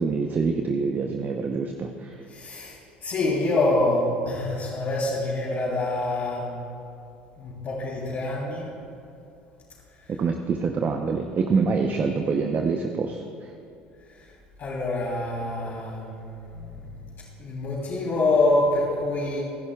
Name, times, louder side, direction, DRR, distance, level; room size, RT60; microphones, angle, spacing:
voice 1, 0.0-2.2 10.2-13.5, right 4 dB, 35° right, 4 dB, 0.9 m, -26 dB
voice 2, 2.3-6.6 7.4-8.7 10.0-10.2 14.1-14.3 14.6-17.0 17.4-19.4, left 2 dB, 50° left, -8 dB, 3.3 m, -26 dB
26.5 x 11.0 x 2.4 m, 2.6 s
hypercardioid pair, 70°, 5 cm